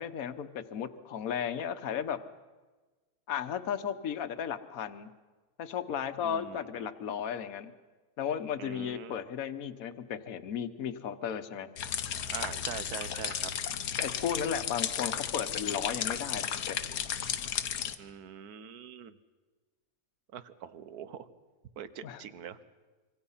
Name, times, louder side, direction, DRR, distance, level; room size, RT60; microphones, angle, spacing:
voice 1, 0.0-2.2 3.3-5.1 5.6-7.7 8.2-11.7 14.0-16.8 22.0-22.2, left 8 dB, 65° left, 10 dB, 1.4 m, -35 dB
voice 2, 6.2-6.9 8.6-9.2 12.1-13.5 18.0-19.2 20.3-21.3 21.8-22.6, right 8 dB, 75° right, 13 dB, 1.5 m, -43 dB
sound 1, 11.8-18.0, left 9 dB, 85° left, 1.5 m, -34 dB
26.0 x 24.5 x 5.7 m, 1.3 s
omnidirectional pair, 1.7 m